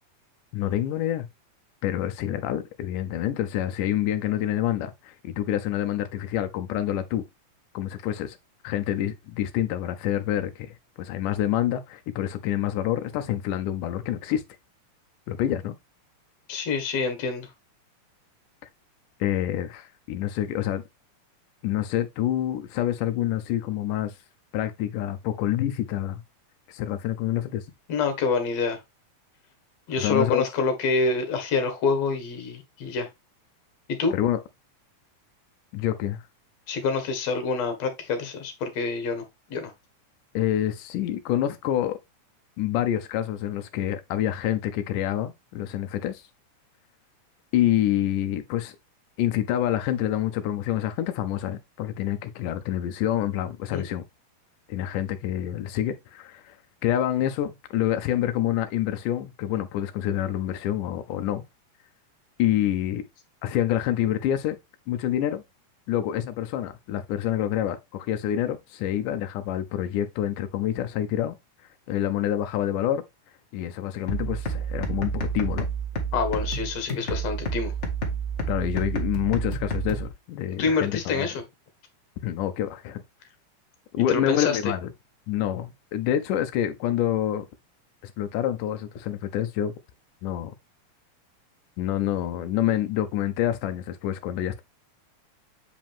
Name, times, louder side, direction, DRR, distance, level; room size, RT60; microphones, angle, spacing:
voice 1, 0.5-1.3 1.8-7.3 7.7-8.4 8.6-14.4 15.3-15.7 19.2-20.8 21.6-24.2 24.5-26.2 26.7-27.7 30.0-30.4 34.1-34.4 35.7-36.2 40.3-42.0 42.6-46.2 47.5-48.8 49.2-54.0 54.7-56.6 56.8-61.4 62.4-63.1 63.4-64.6 64.9-65.4 65.9-71.4 71.9-73.0 73.5-75.7 78.5-81.3 82.2-83.0 83.9-84.9 85.3-87.4 88.0-89.7 90.2-90.5 91.8-94.6, left 12 dB, 90° left, 2.3 m, -27 dB
voice 2, 16.5-17.5 27.9-28.8 29.9-33.1 34.0-34.1 36.7-39.7 53.7-53.9 76.1-77.7 80.6-81.3 84.1-84.6, left 4 dB, 60° left, 2.8 m, -26 dB
sound 1, 74.1-80.1, right 4 dB, 30° left, 1.6 m, -30 dB
8.2 x 5.0 x 3.6 m
omnidirectional pair, 3.6 m